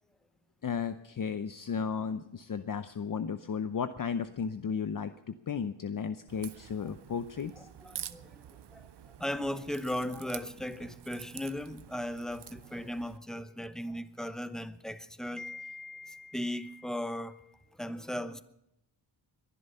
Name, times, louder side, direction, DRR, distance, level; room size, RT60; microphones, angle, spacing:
voice 1, 0.6-7.7, left 6 dB, 50° left, 0.7 m, -34 dB
Crack, 6.3-13.2, right 11 dB, 70° right, 0.7 m, -48 dB
voice 2, 7.6-18.4, left 1 dB, ahead, 0.9 m, -37 dB
21.5 x 11.5 x 5.6 m
wide cardioid pair, 95°, 42 cm